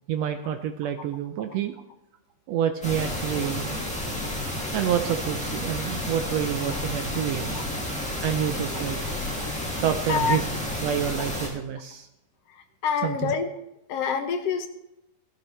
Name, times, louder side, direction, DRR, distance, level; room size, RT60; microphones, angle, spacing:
voice 1, 0.1-1.7 2.5-3.8 4.7-7.6 8.2-9.0 9.8-10.5 10.8-12.1 13.0-13.3, right 9 dB, 90° right, 7 dB, 1.5 m, -28 dB
sound 1, 2.8-11.5, left 1 dB, 5° left, 1.7 m, -31 dB
voice 2, 12.8-13.5 13.9-14.7, left 6 dB, 70° left, 7 dB, 1.6 m, -26 dB
15.5 x 12.0 x 3.2 m, 0.89 s
omnidirectional pair, 3.7 m